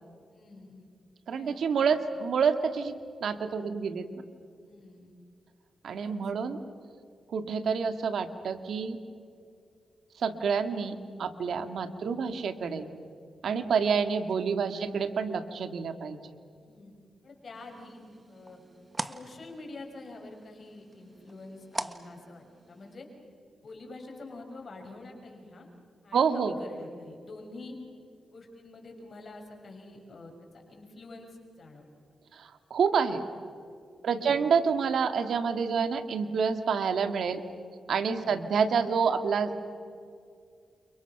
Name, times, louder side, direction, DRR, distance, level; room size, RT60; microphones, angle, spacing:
voice 1, 0.3-0.9 1.3-1.6 1.9-2.1 4.6-5.1 5.9-6.1 11.8-12.3 14.4-14.9 16.6-16.9 17.2-18.0 18.3-18.6 19.0-23.1 23.6-25.7 26.0-27.8 28.3-31.9 34.0-34.4 38.1-38.4, left 2 dB, 55° left, 2 dB, 6.0 m, -47 dB
voice 2, 1.3-3.0 3.2-4.1 5.8-6.6 7.3-9.0 10.2-12.9 13.4-16.2 26.1-26.6 32.3-33.2 34.0-37.4 37.9-39.6, right 6 dB, 75° right, 9 dB, 2.1 m, -28 dB
sound 1, 17.5-22.9, right 2 dB, 25° right, 1.5 m, -42 dB
29.5 x 29.0 x 6.1 m, 2.3 s
cardioid pair, 70°, 0 cm